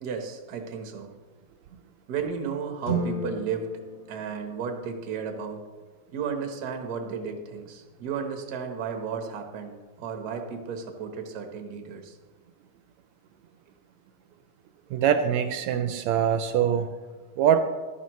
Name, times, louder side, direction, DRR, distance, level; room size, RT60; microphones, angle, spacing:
voice 1, 0.0-1.1 2.1-3.7 4.1-5.6 6.1-12.2, right 6 dB, 50° right, 4 dB, 1.2 m, -33 dB
sound 1, 2.8-5.2, right 3 dB, 45° left, 2.1 m, -34 dB
voice 2, 14.9-16.9 17.4-17.6, right 8 dB, 80° right, 9 dB, 1.8 m, -23 dB
14.5 x 12.0 x 3.1 m, 1.4 s
omnidirectional pair, 3.4 m